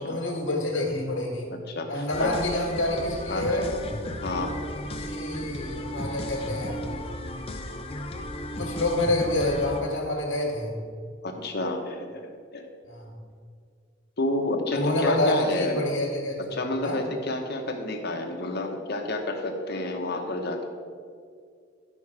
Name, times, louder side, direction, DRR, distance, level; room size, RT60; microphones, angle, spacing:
voice 1, 0.0-1.5 1.9-3.7 4.3-4.4 5.0-6.9 8.6-10.8 12.9-13.1 14.7-16.4 16.8-17.0, left 1 dB, 90° left, -2 dB, 1.7 m, -28 dB
voice 2, 1.7-2.4 3.3-3.7 4.2-4.6 5.4-5.5 11.2-12.7 14.2-15.8 16.5-20.7, left 2 dB, 55° left, 3 dB, 1.1 m, -29 dB
sound 1, 2.1-9.8, equal, 30° left, 0.7 m, -35 dB
11.5 x 5.5 x 4.8 m, 2.2 s
head